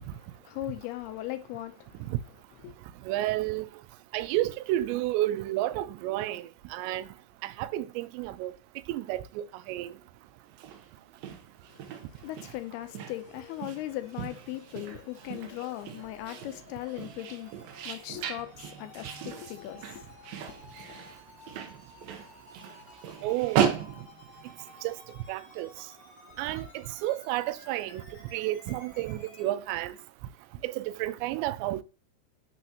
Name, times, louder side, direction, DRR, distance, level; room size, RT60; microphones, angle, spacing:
voice 1, 0.0-2.2 2.6-2.7 11.7-21.0, left 15 dB, 80° left, 2.5 m, -39 dB
voice 2, 3.1-3.7 4.1-7.1 7.4-8.5 8.9-9.9 23.2-23.7 24.8-25.0 25.3-25.7 26.4-28.0 28.3-29.9 30.6-31.8, right 15 dB, 90° right, 2.8 m, -31 dB
sound 1, 10.5-25.0, right 8 dB, 70° right, 2.5 m, -36 dB
sound 2, 12.9-29.5, left 3 dB, 50° left, 2.1 m, -54 dB
11.0 x 5.8 x 2.9 m
omnidirectional pair, 5.0 m